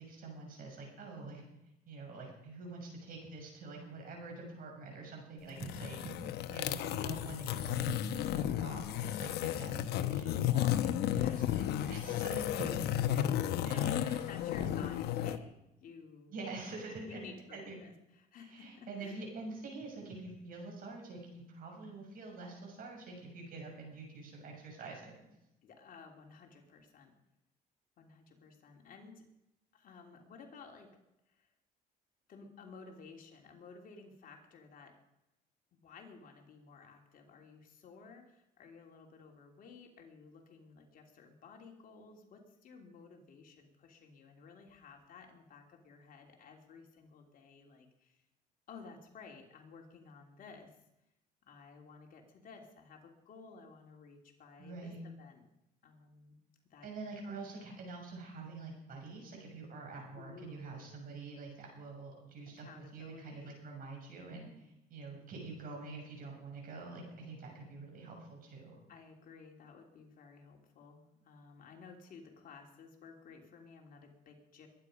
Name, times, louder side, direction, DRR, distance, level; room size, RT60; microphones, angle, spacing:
voice 1, 0.0-1.5 1.9-6.2 6.5-13.4 13.6-14.2 14.6-14.9 16.3-17.2 17.5-17.8 18.4-25.2 54.6-55.0 56.8-68.8, right 3 dB, 55° right, 1 dB, 6.6 m, -46 dB
sound 1, 5.5-15.4, left 12 dB, 75° left, 0.9 m, -33 dB
voice 2, 12.6-13.2 13.6-16.4 17.1-19.2 25.6-27.1 28.0-29.2 29.7-30.9 31.3-31.5 32.3-35.0 35.7-48.2 48.7-50.7 51.4-55.4 55.8-56.4 56.7-56.9 60.2-60.9 62.6-63.5 68.9-74.7, left 5 dB, 55° left, 2 dB, 3.1 m, -54 dB
22.5 x 10.0 x 5.2 m, 0.88 s
cardioid pair, 110°, 17 cm